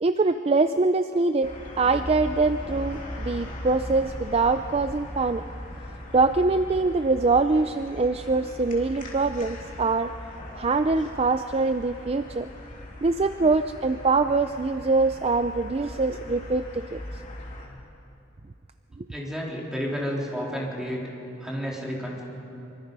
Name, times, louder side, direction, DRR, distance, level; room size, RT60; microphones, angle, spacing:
voice 1, 0.0-1.5 1.8-5.4 6.1-10.1 10.6-12.5 13.0-17.0 19.0-19.1, right 3 dB, 30° right, 9 dB, 0.4 m, -23 dB
sound 1, 1.4-17.7, left 1 dB, 40° left, 3.2 m, -39 dB
voice 2, 19.1-21.0 21.4-22.2, equal, 5° right, -4 dB, 3.6 m, -31 dB
24.5 x 24.0 x 5.4 m, 2.9 s
head